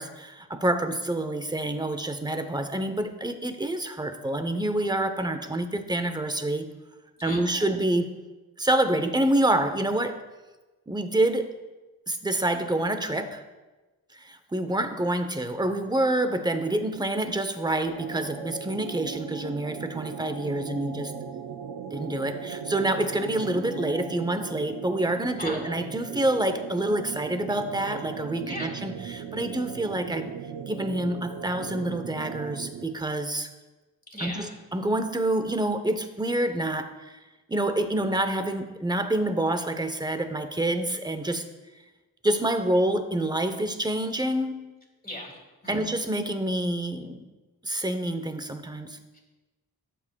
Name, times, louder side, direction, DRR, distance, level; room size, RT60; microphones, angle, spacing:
voice 1, 0.0-6.7 7.2-8.1 8.6-10.2 10.9-11.5 12.1-13.4 14.1-21.1 21.9-30.3 30.7-33.5 34.2-36.9 37.5-41.4 42.2-44.7 45.7-47.3 47.6-49.0, right 1 dB, 10° right, 8 dB, 0.7 m, -27 dB
voice 2, 7.2-7.8 25.4-25.6 28.5-28.7 34.1-34.6 45.0-45.4 45.6-45.8 49.1-49.2, left 1 dB, 25° left, 0 dB, 2.3 m, -37 dB
sound 1, 17.9-33.0, right 7 dB, 80° right, 0.6 m, -38 dB
12.5 x 7.4 x 2.3 m, 1.2 s
wide cardioid pair, 65°, 38 cm